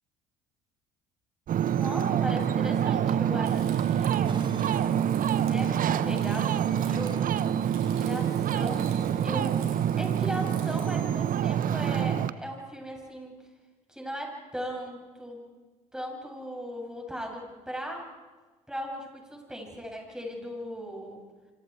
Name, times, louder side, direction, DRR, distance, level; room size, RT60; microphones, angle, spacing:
Ocean, 1.5-12.3, right 9 dB, 50° right, 1.0 m, -26 dB
voice 1, 1.7-4.4 5.3-7.3 7.9-9.5 10.0-13.3 13.9-15.4 15.9-18.1 18.7-21.2, equal, 5° right, 0 dB, 8.0 m, -38 dB
Crumpling crinkling, 3.4-10.9, right 6 dB, 85° right, 4.9 m, -50 dB
sound 1, 4.2-9.8, right 3 dB, 25° right, 3.1 m, -47 dB
28.0 x 26.0 x 4.9 m, 1.3 s
hypercardioid pair, 60°, 19 cm